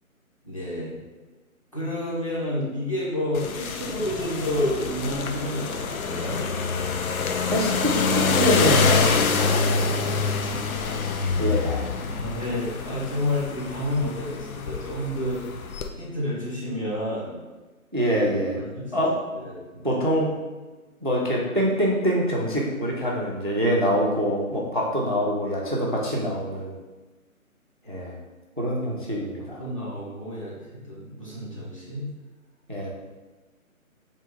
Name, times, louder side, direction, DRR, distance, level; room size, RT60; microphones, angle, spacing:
voice 1, 0.4-0.9 1.7-6.4 9.8-11.3 12.1-15.4 16.0-17.3 18.5-19.0 19.3-20.0 29.4-32.0, left 1 dB, 25° left, -8 dB, 0.8 m, -30 dB
sound 1, 3.3-15.9, left 5 dB, 75° left, 0.6 m, -26 dB
voice 2, 7.5-9.5 11.4-11.8 17.9-18.6 18.9-19.1 19.8-20.3 21.0-26.7 27.9-28.1 28.6-29.6 32.7-32.9, equal, 40° right, -2 dB, 0.4 m, -24 dB
3.5 x 2.9 x 4.3 m, 1.2 s
hypercardioid pair, 170°, 43 cm